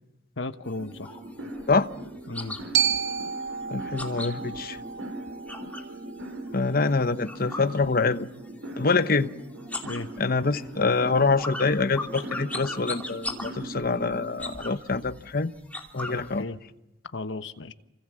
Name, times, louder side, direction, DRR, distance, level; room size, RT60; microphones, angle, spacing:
voice 1, 0.4-1.2 2.3-2.6 9.8-10.1 16.1-16.6 17.1-17.7, left 2 dB, 70° left, 1.2 m, -35 dB
sound 1, 0.7-6.0 6.3-8.5 8.7-9.3 9.6-16.4, left 2 dB, 10° left, 2.9 m, -39 dB
sound 2, 0.8-14.6, right 1 dB, 80° right, 6.0 m, -40 dB
Glockenspiel, 2.7-6.9, right 8 dB, 60° right, 1.0 m, -31 dB
voice 2, 3.7-4.8 6.5-8.3 8.8-9.3 10.2-15.5 15.9-16.4, left 4 dB, 50° left, 1.0 m, -25 dB
29.0 x 26.5 x 7.6 m
head